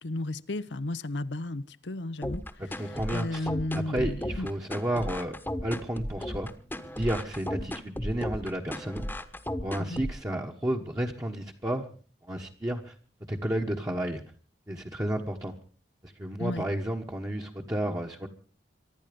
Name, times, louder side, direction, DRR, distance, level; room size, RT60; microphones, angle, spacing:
voice 1, 0.0-4.5 9.8-10.0 16.4-16.6, left 2 dB, 85° left, 0.8 m, -34 dB
sound 1, 2.2-10.2, left 1 dB, 10° left, 1.2 m, -34 dB
voice 2, 2.8-5.3 5.6-6.5 6.8-9.0 9.6-11.9 12.2-12.9 13.3-14.2 14.7-15.5 16.0-18.3, right 1 dB, 20° right, 1.3 m, -32 dB
23.5 x 11.5 x 5.3 m
head